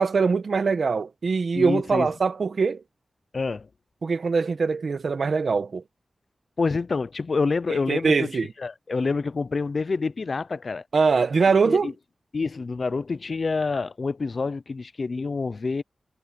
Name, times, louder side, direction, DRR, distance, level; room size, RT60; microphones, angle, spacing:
voice 1, 0.0-2.8 4.0-5.8 7.7-8.5 10.9-11.9, right 4 dB, 55° right, 1.4 m, -22 dB
voice 2, 1.5-2.1 3.3-3.7 6.6-8.3 8.6-10.8 11.6-11.9 12.3-15.8, left 4 dB, 45° left, 0.5 m, -27 dB
wide cardioid pair, 160°, 0 cm